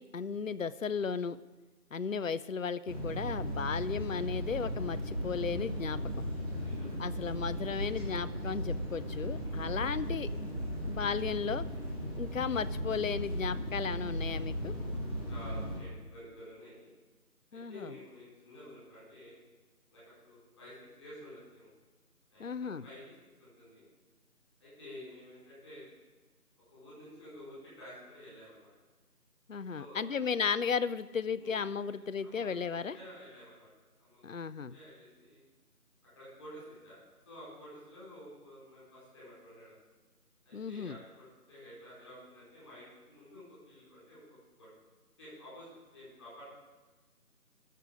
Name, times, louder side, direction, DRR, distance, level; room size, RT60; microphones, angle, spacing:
voice 1, 0.0-1.4 1.9-6.2 7.0-10.3 10.9-11.7 12.2-14.8 17.5-17.9 22.4-22.8 29.5-33.0 34.2-34.7 40.5-41.0, left 6 dB, 60° left, 14 dB, 0.5 m, -35 dB
sound 1, 2.9-15.8, equal, 20° right, 2.8 m, -36 dB
voice 2, 6.6-7.0 15.3-16.9 17.5-19.3 19.9-21.7 22.3-23.1 23.4-23.8 24.6-25.9 26.7-28.7 29.7-30.3 31.4-31.6 32.2-33.7 34.0-34.3 34.7-35.4 36.1-37.0 37.3-39.7 40.4-44.2 44.6-44.7 45.2-46.5, left 1 dB, 10° left, -10 dB, 4.2 m, -51 dB
19.0 x 6.8 x 5.1 m, 1.2 s
figure-of-eight pair, 170°, 46 cm